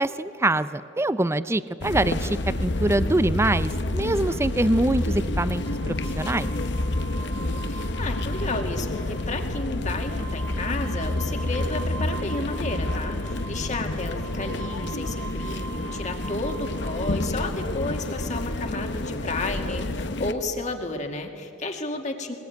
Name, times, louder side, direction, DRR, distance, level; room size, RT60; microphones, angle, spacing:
voice 1, 0.0-6.5, right 1 dB, 15° right, 14 dB, 0.5 m, -24 dB
sound 1, 1.8-20.3, left 1 dB, 60° left, 1.0 m, -29 dB
sound 2, 5.6-19.1, right 4 dB, 90° right, 2.9 m, -43 dB
voice 2, 7.1-22.3, left 2 dB, 40° left, 3 dB, 2.2 m, -32 dB
23.0 x 20.0 x 9.3 m, 2.5 s
head